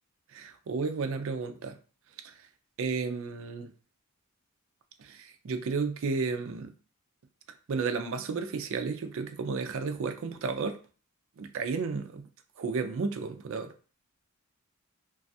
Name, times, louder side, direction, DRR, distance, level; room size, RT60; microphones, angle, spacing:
voice 1, 0.3-1.8 2.2-2.4 2.8-3.7 5.0-6.7 7.7-10.8 11.4-12.3 12.6-13.7, right 4 dB, 60° right, 8 dB, 0.4 m, -32 dB
3.0 x 2.3 x 2.7 m, 0.37 s
head